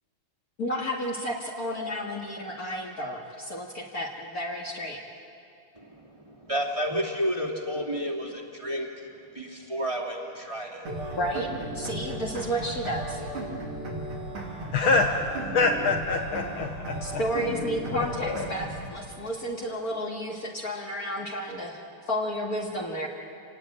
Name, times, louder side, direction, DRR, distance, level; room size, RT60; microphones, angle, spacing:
voice 1, 0.6-5.0 11.1-13.3 17.0-21.8 22.1-23.1, equal, 45° left, -2 dB, 2.3 m, -32 dB
voice 2, 5.8-8.9 9.3-10.9, equal, 15° right, 0 dB, 2.5 m, -31 dB
sound 1, 10.9-18.9, right 1 dB, 90° right, 4.5 m, -35 dB
voice 3, 14.7-17.2 17.9-18.5, left 3 dB, 70° left, 3 dB, 2.0 m, -26 dB
27.5 x 19.0 x 8.9 m, 2.6 s
omnidirectional pair, 2.4 m